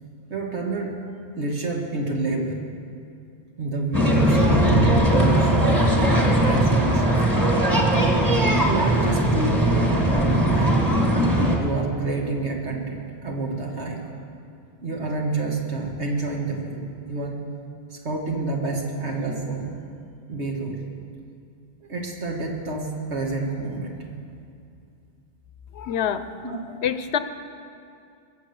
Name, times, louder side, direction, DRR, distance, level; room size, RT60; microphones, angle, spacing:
voice 1, 0.3-1.0 1.4-2.6 3.6-5.5 6.4-7.2 8.6-9.9 10.1-10.8 11.5-14.0 14.8-17.4 17.9-19.8 20.3-20.8 21.9-24.0 26.4-26.6, right 3 dB, 75° right, 0 dB, 2.1 m, -28 dB
sound 1, 3.9-11.6, right 1 dB, 15° right, 1.8 m, -19 dB
voice 2, 25.8-26.2 26.8-27.2, left 8 dB, 75° left, 11 dB, 1.0 m, -25 dB
22.5 x 7.5 x 7.0 m, 2.5 s
omnidirectional pair, 1.2 m